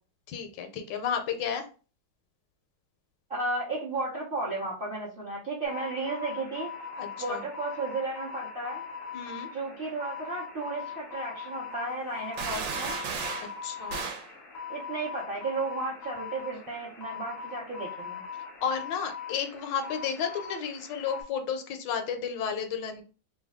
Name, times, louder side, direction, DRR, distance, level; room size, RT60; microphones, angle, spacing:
voice 1, 0.3-1.6 7.0-7.4 9.1-9.5 13.4-14.1 18.6-23.0, left 7 dB, 75° left, 6 dB, 1.2 m, -32 dB
voice 2, 3.3-6.7 7.2-8.8 9.5-13.0 14.7-18.2, right 3 dB, 50° right, -3 dB, 0.6 m, -34 dB
sound 1, 5.6-21.2, left 6 dB, 50° left, 0.7 m, -41 dB
sound 2, 12.4-13.5 13.9-14.3, right 5 dB, 80° right, 1.4 m, -33 dB
3.2 x 2.2 x 3.5 m, 0.36 s
omnidirectional pair, 2.0 m